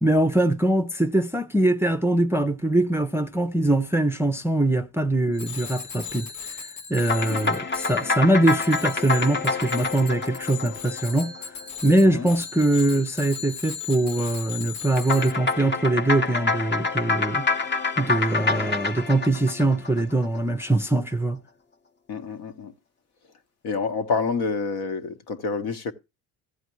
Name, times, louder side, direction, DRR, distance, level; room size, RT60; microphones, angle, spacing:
voice 1, 0.0-11.5 11.8-17.5 18.0-21.4, right 1 dB, 5° right, 0.5 m, -22 dB
Bicycle bell, 5.3-15.3, left 7 dB, 85° left, 1.6 m, -38 dB
sound 1, 7.0-11.6 15.0-20.4, left 3 dB, 25° left, 0.8 m, -27 dB
voice 2, 22.1-22.7 23.6-25.9, left 4 dB, 60° left, 1.2 m, -28 dB
14.5 x 8.1 x 3.1 m
supercardioid pair, 90°, 42 cm